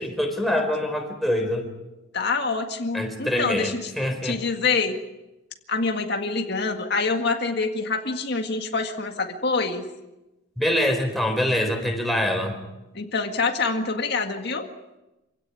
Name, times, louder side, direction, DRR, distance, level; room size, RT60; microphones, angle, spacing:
voice 1, 0.0-1.6 2.9-4.4 10.6-12.6, left 1 dB, ahead, 3 dB, 4.2 m, -25 dB
voice 2, 2.1-3.9 4.2-5.0 5.7-9.9 12.9-14.7, left 4 dB, 55° left, 4 dB, 1.9 m, -26 dB
27.0 x 17.0 x 9.8 m, 0.99 s
head